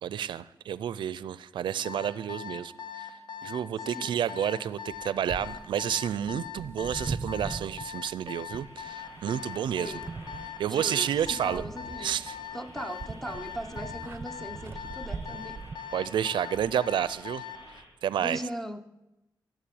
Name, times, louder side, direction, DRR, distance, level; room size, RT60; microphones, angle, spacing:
voice 1, 0.0-2.7 3.0-3.1 3.4-9.9 10.6-11.6 12.0-12.4 15.9-17.4 18.0-18.4, right 9 dB, 85° right, 0.4 m, -30 dB
Alarm, 1.8-17.6, left 9 dB, 70° left, 1.6 m, -40 dB
sound 1, 4.9-15.8, right 4 dB, 30° right, 0.7 m, -41 dB
sound 2, 8.5-17.8, equal, 85° left, 4.3 m, -49 dB
voice 2, 9.8-10.1 10.7-12.2 12.5-15.6 18.2-18.8, right 1 dB, 5° left, 0.8 m, -39 dB
13.0 x 7.6 x 8.5 m
wide cardioid pair, 125°, 8 cm